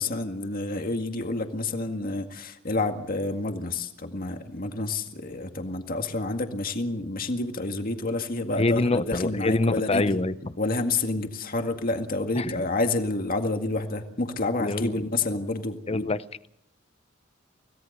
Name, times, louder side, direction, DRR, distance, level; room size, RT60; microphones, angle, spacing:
voice 1, 0.0-10.2 10.6-16.1, left 2 dB, 45° left, 6 dB, 2.0 m, -29 dB
voice 2, 8.5-10.5 12.4-12.6 14.6-14.9 15.9-16.2, left 2 dB, 30° left, 14 dB, 0.8 m, -25 dB
25.5 x 17.5 x 6.7 m, 0.75 s
head